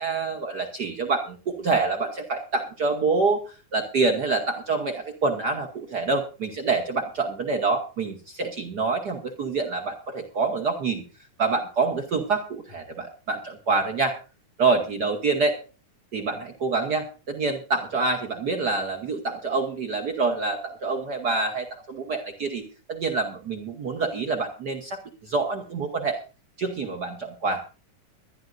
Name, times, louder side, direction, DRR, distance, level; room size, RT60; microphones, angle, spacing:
voice 1, 0.0-11.0 11.4-14.2 14.6-15.6 16.1-22.6 22.9-26.2 26.6-27.7, right 4 dB, 70° right, 3 dB, 0.9 m, -26 dB
21.5 x 12.0 x 2.6 m, 0.34 s
omnidirectional pair, 3.5 m